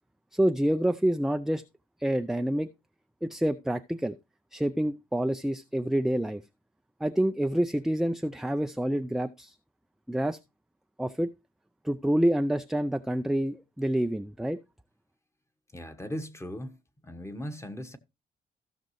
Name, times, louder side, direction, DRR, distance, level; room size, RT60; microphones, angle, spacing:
voice 1, 0.3-1.6 2.0-2.7 3.2-4.2 4.5-6.4 7.0-9.5 10.1-10.4 11.0-11.3 11.8-14.6, right 1 dB, ahead, 0.4 m, -27 dB
voice 2, 15.7-16.8 17.0-18.0, equal, 15° left, 1.2 m, -38 dB
15.5 x 6.0 x 3.1 m
cardioid pair, 95°, 17 cm